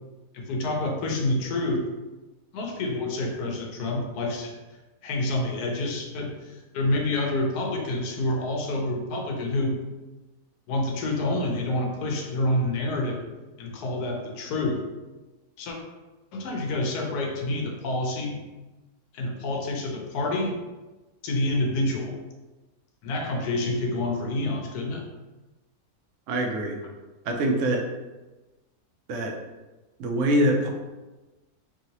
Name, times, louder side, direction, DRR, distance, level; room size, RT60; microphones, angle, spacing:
voice 1, 0.3-1.8 2.5-4.6 5.0-9.8 10.7-13.2 13.6-14.8 15.6-15.8 16.3-18.4 19.1-20.6 21.2-22.2 23.0-25.1, left 2 dB, 90° left, 1 dB, 1.2 m, -28 dB
voice 2, 26.3-26.8 27.2-27.9 29.1-29.3 30.0-30.7, right 1 dB, 65° right, 1 dB, 0.8 m, -24 dB
3.1 x 2.7 x 2.8 m, 1.1 s
omnidirectional pair, 1.6 m